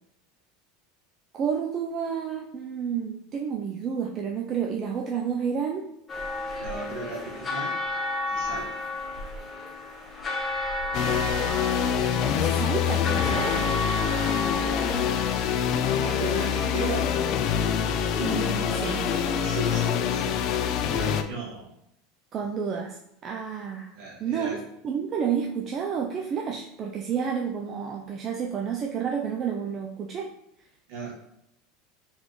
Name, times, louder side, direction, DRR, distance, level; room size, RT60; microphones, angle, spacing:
voice 1, 1.3-5.9 12.4-13.6 18.2-19.0 22.3-23.9 24.2-24.6 24.8-30.3, right 7 dB, 40° right, 1 dB, 0.4 m, -30 dB
sound 1, 6.1-15.6, left 2 dB, 20° left, 1.1 m, -32 dB
voice 2, 6.6-7.8 8.3-8.8 16.0-17.2 19.4-21.7 23.9-24.6 30.9-31.1, right 2 dB, 65° right, -3 dB, 1.5 m, -36 dB
sound 2, 10.9-21.2, left 8 dB, 55° left, 0.4 m, -25 dB
4.1 x 3.4 x 3.1 m, 0.79 s
supercardioid pair, 110°, 0 cm